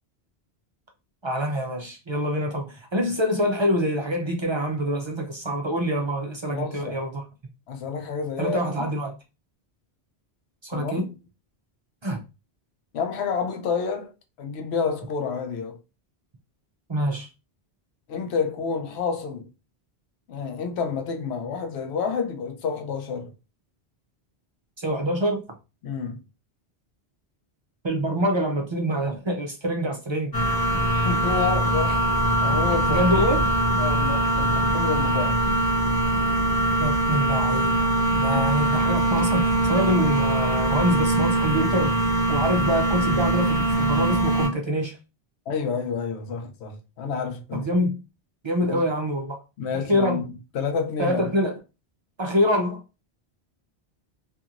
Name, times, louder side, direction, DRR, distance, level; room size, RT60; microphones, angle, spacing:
voice 1, 1.2-7.2 8.4-9.1 10.6-11.1 12.0-12.2 16.9-17.3 24.8-25.4 27.8-30.3 32.9-33.6 36.8-45.0 47.5-48.0 48.4-49.4 49.9-50.3 51.0-51.6 52.2-52.8, equal, 50° right, 0.3 m, -25 dB
voice 2, 6.5-7.0 7.7-8.6 10.7-11.1 12.9-14.1 14.4-15.8 18.1-19.5 20.3-23.3 25.8-26.2 30.9-32.0 32.4-33.1 33.8-35.4 38.3-38.5 45.5-47.7 48.6-48.8 49.6-51.3, left 5 dB, 90° left, 0.9 m, -29 dB
sound 1, 30.3-44.5, right 1 dB, 30° left, 0.5 m, -22 dB
2.8 x 2.5 x 2.4 m
omnidirectional pair, 1.1 m